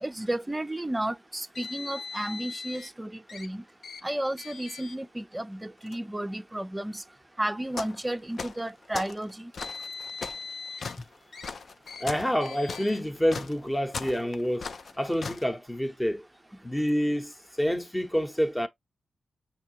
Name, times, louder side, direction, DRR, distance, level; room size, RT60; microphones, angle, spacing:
voice 1, 0.0-3.6 4.0-7.0 7.4-9.5, right 1 dB, 15° right, 0.5 m, -33 dB
Car, 1.5-2.9 3.3-3.5 3.8-4.0 4.4-5.0 5.8-6.0 6.9-7.0 9.3-10.9 11.3-11.5 11.9-12.0 12.4-13.0, left 4 dB, 75° left, 0.8 m, -41 dB
sound 1, 7.7-8.0 8.3-9.2 9.6-15.5, left 5 dB, 60° left, 0.4 m, -38 dB
voice 2, 12.0-14.7 15.0-16.2 16.6-18.7, equal, 10° left, 0.8 m, -28 dB
5.8 x 2.7 x 2.8 m
cardioid pair, 65°, 0 cm